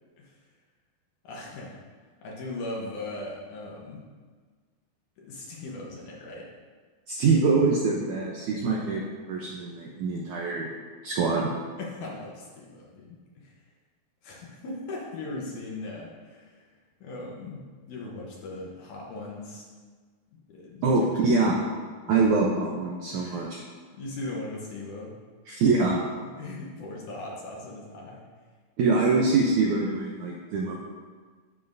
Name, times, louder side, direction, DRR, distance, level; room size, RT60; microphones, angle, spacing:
voice 1, 1.2-1.8 2.2-4.0 5.2-6.5 8.6-8.9 11.8-13.5 14.2-16.7 17.0-19.6 20.3-21.5 22.1-22.2 23.1-23.6 23.9-25.1 26.2-28.2 29.0-29.1, left 2 dB, 65° left, -3 dB, 2.2 m, -39 dB
voice 2, 7.1-9.0 9.3-10.7 11.0-11.5 20.8-21.6 22.1-23.6 25.5-26.0 28.8-30.7, right 4 dB, 80° right, -2 dB, 1.7 m, -24 dB
10.5 x 8.0 x 2.6 m, 1.5 s
omnidirectional pair, 4.4 m